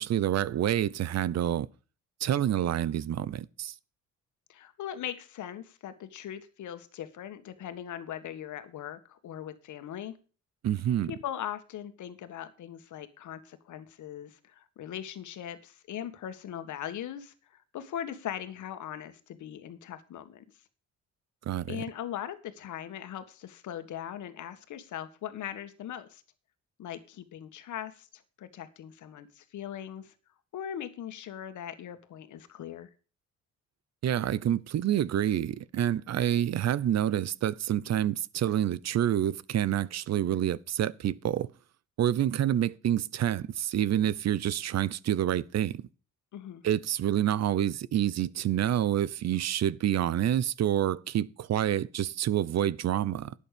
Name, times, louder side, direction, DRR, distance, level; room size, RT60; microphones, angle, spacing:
voice 1, 0.0-1.7 2.2-3.7 10.6-11.1 21.5-21.8 34.0-41.5 42.0-45.9 46.6-53.3, right 11 dB, 60° right, 0.8 m, -28 dB
voice 2, 4.5-10.1 11.1-20.4 21.7-26.2 26.8-30.1 30.5-32.9 46.3-46.6, left 10 dB, 75° left, 1.8 m, -40 dB
11.5 x 8.6 x 5.2 m
cardioid pair, 90°, 30 cm